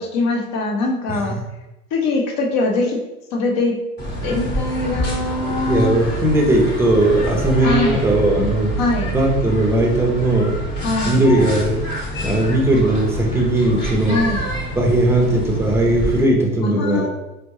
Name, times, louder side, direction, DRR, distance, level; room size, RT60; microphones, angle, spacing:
voice 1, 0.0-1.4 1.9-3.0 3.3-3.8 4.2-6.0 7.6-8.0 8.8-9.1 10.8-11.1 14.1-14.4 16.6-17.1, left 2 dB, 45° left, 2 dB, 0.9 m, -22 dB
sound 1, 4.0-16.2, equal, 25° left, 1.1 m, -26 dB
voice 2, 5.5-8.7 9.1-10.6 11.0-11.8 12.2-14.2 14.8-17.1, right 1 dB, 5° right, 0 dB, 0.6 m, -18 dB
4.3 x 2.2 x 3.0 m, 0.97 s
figure-of-eight pair, 75°, 46 cm